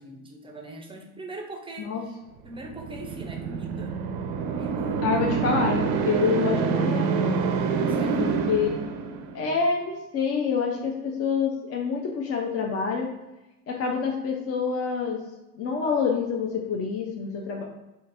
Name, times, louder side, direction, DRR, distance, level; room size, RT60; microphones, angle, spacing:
voice 1, 0.0-2.1 2.4-4.0 4.5-5.5 7.9-8.4, right 2 dB, 10° right, 2 dB, 0.5 m, -41 dB
sound 1, 2.6-9.5, right 5 dB, 60° right, 0.6 m, -27 dB
voice 2, 5.0-7.5 8.2-8.7 9.3-13.1 13.7-15.2 15.5-17.6, left 5 dB, 35° left, 0 dB, 0.5 m, -27 dB
3.8 x 2.5 x 2.6 m, 0.99 s
hypercardioid pair, 75°, 44 cm